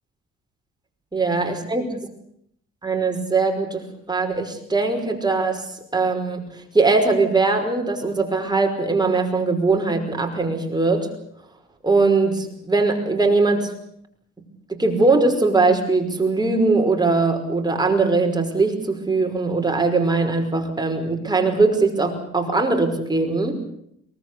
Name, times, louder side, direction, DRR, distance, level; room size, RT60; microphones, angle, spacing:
voice 1, 1.1-1.9 2.8-5.6 5.9-6.4 6.7-11.1 11.8-13.7 14.7-23.6, right 3 dB, 15° right, 3 dB, 5.5 m, -20 dB
23.5 x 19.0 x 8.3 m, 0.71 s
cardioid pair, 90°, 30 cm